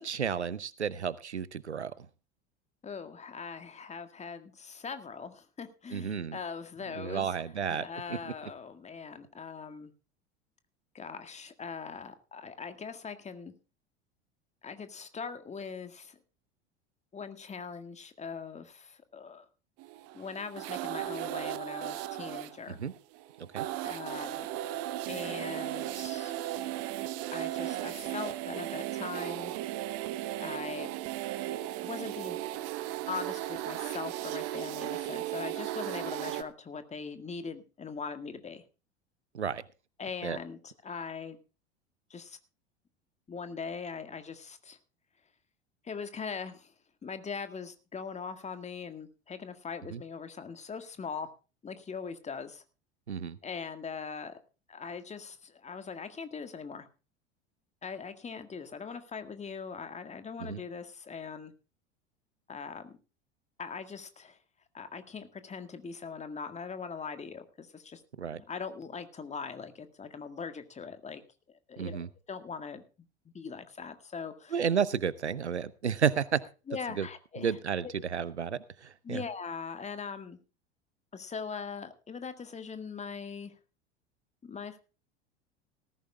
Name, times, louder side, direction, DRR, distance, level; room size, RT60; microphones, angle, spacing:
voice 1, 0.0-2.1 5.9-6.4 7.0-8.3 22.7-22.9 23.4-23.7 39.3-39.6 40.2-40.4 49.9-50.0 53.1-53.4 60.4-60.6 68.2-68.4 71.8-72.1 74.5-76.4 77.0-77.1 77.4-79.2, right 7 dB, 85° right, 19 dB, 0.8 m, -32 dB
voice 2, 2.8-9.9 10.9-13.5 14.6-16.2 17.1-19.5 20.1-22.8 23.8-24.5 25.1-26.3 27.3-29.5 30.4-30.9 31.8-32.4 33.1-38.6 40.0-41.4 42.1-42.4 43.3-44.8 45.8-46.7 47.0-51.3 51.6-52.6 53.4-54.4 54.7-56.9 57.8-61.5 62.5-63.0 63.6-64.4 64.7-68.0 68.3-71.2 71.5-72.8 73.3-74.6 76.7-77.6 77.8-77.9 79.0-80.4 81.1-83.5 84.4-84.8, left 5 dB, 20° left, 9 dB, 1.8 m, -41 dB
sound 1, 19.8-36.4, right 14 dB, 45° right, 1.2 m, -36 dB
18.0 x 14.5 x 2.3 m, 0.32 s
figure-of-eight pair, 80°, 33 cm